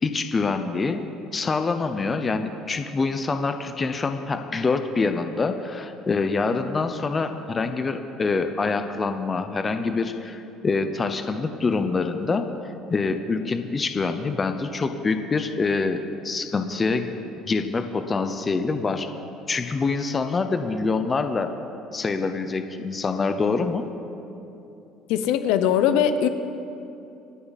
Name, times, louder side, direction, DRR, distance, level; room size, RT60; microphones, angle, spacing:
voice 1, 0.0-1.0 1.3-12.5 12.9-17.1 17.4-19.1 19.5-21.5 21.9-23.9, left 4 dB, 20° left, 8 dB, 0.7 m, -25 dB
voice 2, 25.1-26.3, left 9 dB, 75° left, 10 dB, 0.8 m, -20 dB
26.0 x 9.5 x 4.1 m, 2.8 s
cardioid pair, 160°, 0 cm